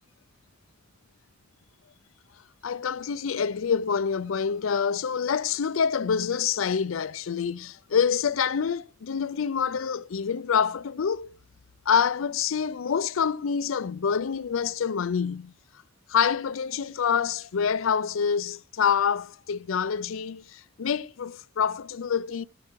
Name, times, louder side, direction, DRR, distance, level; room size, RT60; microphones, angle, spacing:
voice 1, 2.6-11.3 11.9-15.5 16.1-22.4, left 7 dB, 90° left, 0.5 m, -26 dB
17.0 x 7.8 x 4.6 m
head